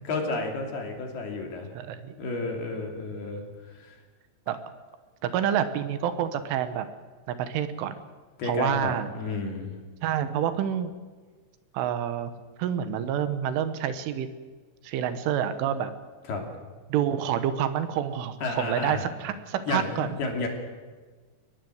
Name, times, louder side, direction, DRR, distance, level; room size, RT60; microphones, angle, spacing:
voice 1, 0.1-1.7 2.2-4.0 8.4-9.7 16.3-16.4 18.4-19.0 19.7-20.5, left 3 dB, 55° left, 2 dB, 4.6 m, -31 dB
voice 2, 1.7-2.2 4.5-4.6 5.2-6.9 7.3-8.0 8.4-9.1 10.0-10.9 11.7-12.3 12.6-14.3 14.8-15.9 16.9-20.2, right 9 dB, 80° right, 11 dB, 3.6 m, -28 dB
22.5 x 20.0 x 7.9 m, 1.4 s
omnidirectional pair, 5.7 m